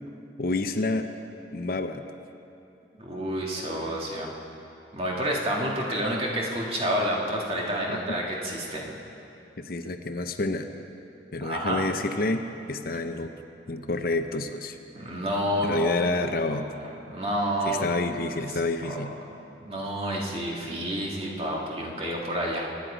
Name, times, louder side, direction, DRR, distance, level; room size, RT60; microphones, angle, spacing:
voice 1, 0.4-1.1 1.5-2.0 7.9-8.0 9.6-10.7 11.3-12.4 12.7-13.3 13.7-14.8 15.6-16.7 17.7-19.1, left 2 dB, 55° left, 7 dB, 0.7 m, -28 dB
voice 2, 3.0-4.3 4.9-8.9 11.4-11.8 14.9-15.9 16.4-17.8 18.5-19.1 19.5-22.6, equal, 35° right, -2 dB, 2.1 m, -29 dB
23.5 x 9.6 x 5.1 m, 2.9 s
head